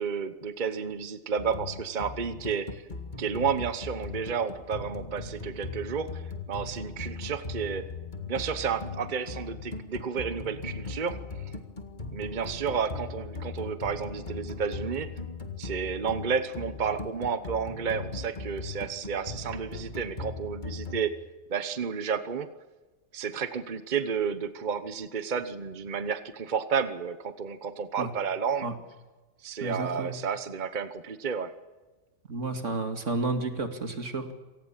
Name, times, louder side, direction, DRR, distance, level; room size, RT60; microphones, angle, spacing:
voice 1, 0.0-2.8 3.2-7.8 8.3-11.2 12.1-15.1 15.6-21.1 21.5-22.5 23.1-28.7 29.4-31.5, right 6 dB, 40° right, 11 dB, 1.1 m, -31 dB
sound 1, 1.4-21.0, left 3 dB, 40° left, 2.1 m, -39 dB
voice 2, 29.6-30.1 32.3-34.3, right 3 dB, 85° right, 6 dB, 2.7 m, -31 dB
27.0 x 19.0 x 7.4 m, 1.2 s
omnidirectional pair, 1.3 m